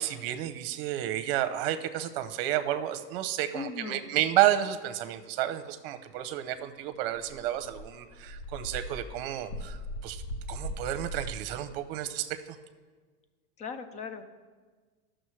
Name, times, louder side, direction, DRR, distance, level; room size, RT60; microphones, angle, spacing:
voice 1, 0.0-9.8 10.0-10.2 10.5-12.3, right 12 dB, 65° right, 10 dB, 0.8 m, -31 dB
voice 2, 3.5-4.2 13.6-14.2, left 5 dB, 25° left, 10 dB, 0.5 m, -38 dB
Dog, 6.7-6.8 7.1-11.3, equal, 85° left, 1.0 m, -39 dB
15.0 x 6.2 x 3.2 m, 1.4 s
supercardioid pair, 145°, 30 cm